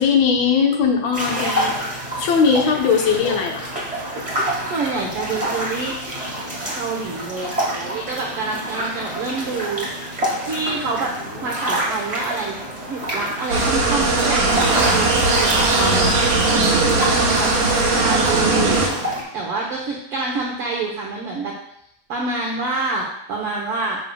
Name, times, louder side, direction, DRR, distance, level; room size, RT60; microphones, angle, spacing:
voice 1, 0.0-1.7 2.2-3.7 17.6-17.7, left 6 dB, 65° left, 1 dB, 2.0 m, -19 dB
sound 1, 1.1-19.2, right 1 dB, 15° right, 1.5 m, -27 dB
voice 2, 4.7-5.9 6.7-9.9 10.4-11.1 11.4-12.6 12.9-17.5 18.0-19.1 19.3-21.5 22.1-24.0, right 3 dB, 65° right, -2 dB, 1.4 m, -27 dB
sound 2, 13.5-18.9, right 3 dB, 85° right, 3.4 m, -19 dB
12.0 x 6.6 x 2.3 m, 0.76 s
omnidirectional pair, 3.9 m